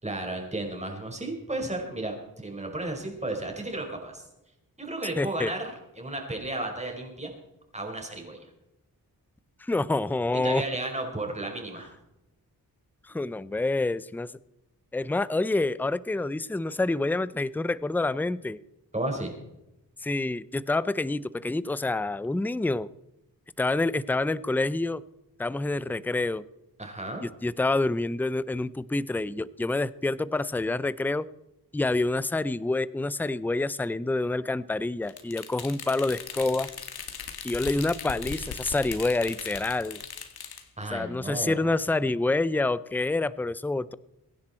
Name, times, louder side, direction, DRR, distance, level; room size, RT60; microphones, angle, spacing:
voice 1, 0.0-4.2 4.8-5.7 6.0-7.3 7.7-8.4 10.3-11.9 18.9-19.3 26.8-27.2 40.8-41.6, right 2 dB, 20° right, 2 dB, 4.9 m, -33 dB
voice 2, 5.2-5.5 9.6-10.6 13.1-14.3 14.9-18.6 20.0-22.9 23.6-25.0 25.4-26.4 27.2-31.3 31.7-36.7 37.4-40.0 40.9-43.9, left 2 dB, 5° left, 18 dB, 0.5 m, -27 dB
sound 1, 35.1-40.6, left 7 dB, 90° left, 1.9 m, -39 dB
23.5 x 10.5 x 4.4 m, 0.89 s
cardioid pair, 80°, 36 cm